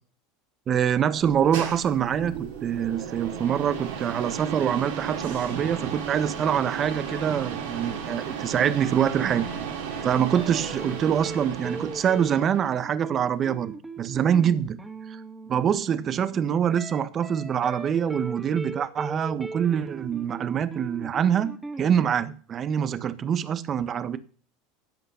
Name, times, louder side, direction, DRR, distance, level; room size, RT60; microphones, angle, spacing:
voice 1, 0.7-9.5 10.0-14.8 15.1-15.2 15.5-24.2, right 8 dB, 40° right, 1.2 m, -25 dB
sound 1, 1.1-12.8, right 7 dB, 75° right, 4.9 m, -34 dB
sound 2, 9.5-9.7 9.9-22.1, right 3 dB, 15° right, 2.5 m, -39 dB
16.0 x 5.7 x 7.0 m
hypercardioid pair, 90°, 0 cm